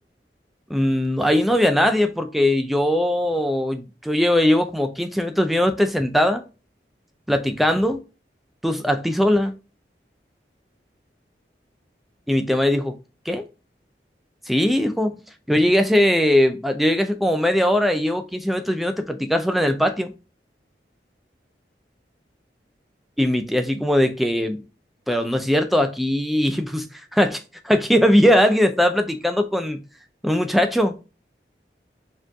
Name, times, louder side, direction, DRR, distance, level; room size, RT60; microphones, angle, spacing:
voice 1, 0.7-6.4 7.3-8.0 8.6-9.5 12.3-13.0 13.3-13.4 14.5-15.2 15.5-20.1 23.2-24.6 25.1-26.9 27.1-29.8 30.2-31.0, left 1 dB, ahead, 0.5 m, -20 dB
4.5 x 3.1 x 3.5 m
head